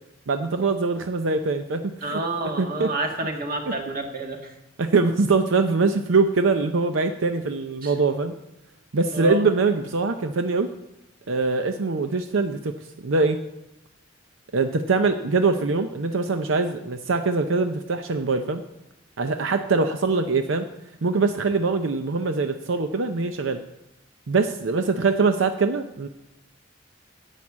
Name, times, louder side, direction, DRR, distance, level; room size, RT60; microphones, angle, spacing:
voice 1, 0.3-2.2 2.6-2.9 4.8-8.3 8.9-10.7 11.3-12.7 13.0-13.4 14.5-18.6 19.2-20.7 21.0-23.6 24.3-26.1, right 4 dB, 85° right, 8 dB, 0.6 m, -23 dB
voice 2, 2.0-4.5 7.8-7.9 9.1-9.5, right 2 dB, 50° right, 3 dB, 1.8 m, -29 dB
10.5 x 8.3 x 7.3 m, 0.92 s
head